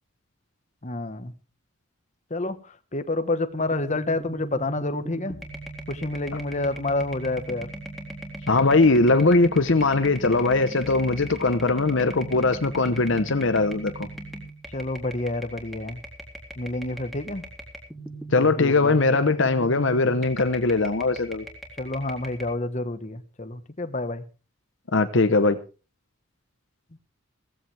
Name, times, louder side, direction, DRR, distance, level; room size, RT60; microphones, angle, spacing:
voice 1, 0.8-1.3 2.3-5.4 5.9-7.7 14.7-16.0 16.6-17.4 18.4-19.0 21.8-24.2, left 2 dB, 35° left, 1.2 m, -29 dB
sound 1, 3.5-22.5, right 1 dB, ahead, 3.5 m, -39 dB
voice 2, 8.5-14.1 18.3-21.5 24.9-25.6, left 3 dB, 60° left, 0.9 m, -21 dB
16.5 x 15.5 x 3.4 m
head